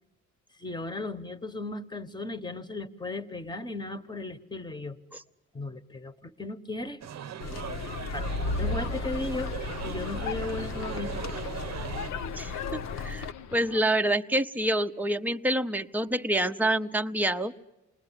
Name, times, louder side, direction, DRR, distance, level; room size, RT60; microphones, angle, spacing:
voice 1, 0.6-5.0 5.5-7.0 8.1-9.5 9.8-11.1, left 2 dB, 15° left, 10 dB, 1.3 m, -36 dB
sound 1, 7.0-12.1, right 9 dB, 60° right, 0.9 m, -40 dB
sound 2, 7.4-13.3, left 3 dB, 60° left, 1.2 m, -34 dB
sound 3, 8.4-13.8, left 9 dB, 80° left, 0.9 m, -42 dB
voice 2, 12.4-13.3 13.5-17.5, right 1 dB, 5° right, 6 dB, 0.9 m, -27 dB
28.0 x 20.0 x 10.0 m, 1.0 s
cardioid pair, 90°, 30 cm